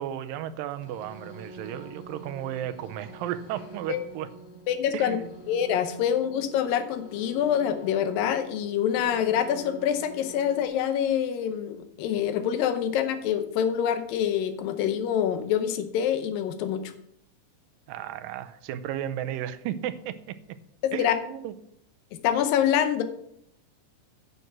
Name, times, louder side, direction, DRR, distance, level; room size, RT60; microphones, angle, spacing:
voice 1, 0.0-4.3 4.9-5.3 8.1-8.2 17.9-20.6 20.9-21.5, right 11 dB, 85° right, 11 dB, 2.3 m, -34 dB
sound 1, 0.7-10.7, right 1 dB, 60° left, 2.0 m, -46 dB
voice 2, 4.7-5.2 5.5-16.9 20.8-21.1 22.1-23.0, left 9 dB, 80° left, 9 dB, 2.6 m, -26 dB
9.2 x 6.7 x 6.0 m, 0.71 s
omnidirectional pair, 4.0 m